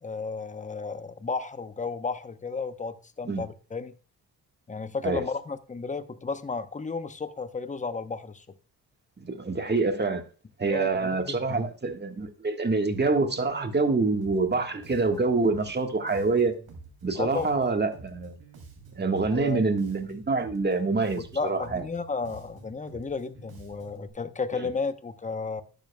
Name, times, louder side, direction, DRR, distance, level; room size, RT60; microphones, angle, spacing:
voice 1, 0.0-4.0 4.7-8.4 10.7-11.6 17.2-17.5 19.3-19.6 21.2-25.6, left 4 dB, 20° left, 0.8 m, -33 dB
voice 2, 9.2-10.2 10.6-16.5 17.0-18.3 19.0-21.8, right 3 dB, 25° right, 1.5 m, -26 dB
Bass guitar, 14.2-24.1, right 3 dB, 60° right, 3.0 m, -49 dB
11.5 x 9.2 x 2.3 m
supercardioid pair, 65°, 40 cm